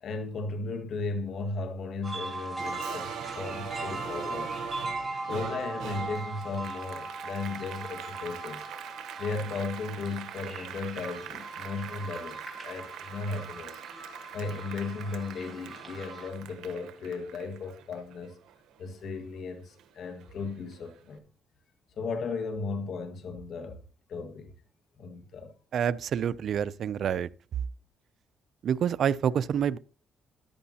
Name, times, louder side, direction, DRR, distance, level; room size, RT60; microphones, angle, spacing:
voice 1, 0.0-4.5 5.3-8.7 9.2-13.8 14.3-18.4 18.8-21.2 22.0-23.8 24.1-24.5 25.0-25.5, left 4 dB, 65° left, 1.8 m, -36 dB
sound 1, 2.0-16.3, right 2 dB, 10° right, 4.2 m, -39 dB
Applause, 2.6-19.4 19.8-21.0, right 9 dB, 80° right, 1.0 m, -43 dB
voice 2, 25.7-27.3 28.6-29.8, right 8 dB, 65° right, 0.4 m, -27 dB
14.0 x 10.5 x 2.9 m
cardioid pair, 90°, 0 cm